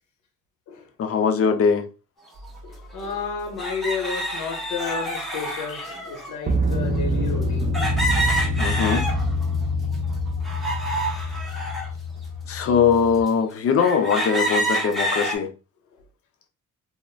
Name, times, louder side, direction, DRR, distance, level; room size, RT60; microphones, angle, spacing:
voice 1, 1.0-1.9 5.7-6.0 8.6-9.1 11.2-11.7 12.5-15.5, left 6 dB, 50° left, 0.6 m, -22 dB
sound 1, 2.4-2.5 3.6-6.3 7.7-9.5 9.9-11.9 12.5-12.6 13.3-13.4 13.8-15.4, right 1 dB, ahead, 0.8 m, -27 dB
sound 2, 2.4-2.6 6.5-13.2, left 1 dB, 30° right, 0.4 m, -26 dB
voice 2, 2.6-7.8 8.2-8.4, left 5 dB, 80° left, 0.8 m, -32 dB
2.4 x 2.0 x 3.2 m
cardioid pair, 90°, 30 cm